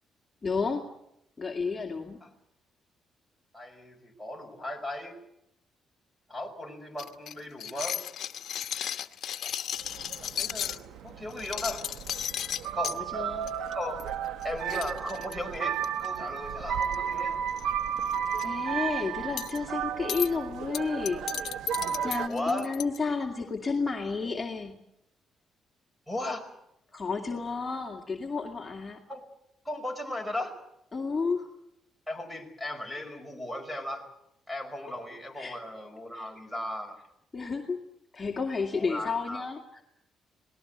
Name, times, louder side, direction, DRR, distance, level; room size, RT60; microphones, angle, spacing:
voice 1, 0.4-0.9 1.4-2.2 12.9-13.5 18.4-21.2 22.0-24.8 26.9-29.0 30.9-31.5 35.4-35.6 36.1-36.3 37.3-37.8 38.1-39.8, left 4 dB, 25° left, 0 dB, 2.4 m, -31 dB
voice 2, 3.5-5.2 6.3-8.0 10.2-11.9 12.7-13.0 13.7-14.0 14.4-17.4 22.3-22.7 26.1-26.5 29.1-29.2 29.6-30.6 32.1-34.0 34.5-37.0 38.7-39.5, left 1 dB, 5° right, 8 dB, 5.4 m, -36 dB
sound 1, 7.0-10.8 11.3-13.0 13.5-13.7 14.0-14.1 14.4-14.5 14.7-16.1 16.8-17.2 17.5-17.6 18.0-18.4 19.4-19.6 20.1-20.3 20.7-23.0, left 10 dB, 65° left, 1.1 m, -34 dB
sound 2, 9.8-22.3, right 8 dB, 80° right, 1.1 m, -33 dB
27.0 x 19.0 x 8.1 m, 0.80 s
cardioid pair, 90°, 0 cm